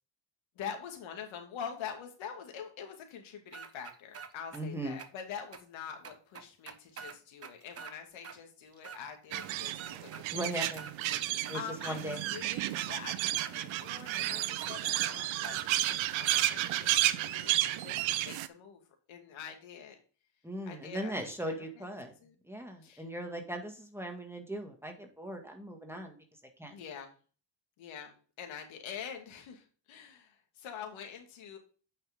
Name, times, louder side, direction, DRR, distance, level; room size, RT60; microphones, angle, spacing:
voice 1, 0.5-10.5 11.5-20.0 20.7-21.9 22.2-22.3 22.8-23.1 26.7-27.1 27.8-31.6, left 7 dB, 80° left, 4 dB, 2.5 m, -45 dB
sound 1, 3.5-4.6 5.0-5.1 5.5-5.6 6.0-7.9 8.2-8.4 8.7-9.5 9.8-11.0 11.4-12.2 12.7-12.9 13.4-13.5 14.1-14.2 14.6-14.7 15.0-15.2 15.4-16.5, right 6 dB, 30° right, 1.1 m, -46 dB
voice 2, 4.5-5.0 10.3-10.9 11.5-12.2 20.4-22.1 22.5-26.2 26.6-26.7, right 1 dB, 5° right, 3 dB, 1.8 m, -39 dB
sound 2, 9.3-18.5, right 14 dB, 80° right, 0.8 m, -32 dB
9.1 x 5.8 x 3.6 m, 0.38 s
cardioid pair, 110°, 46 cm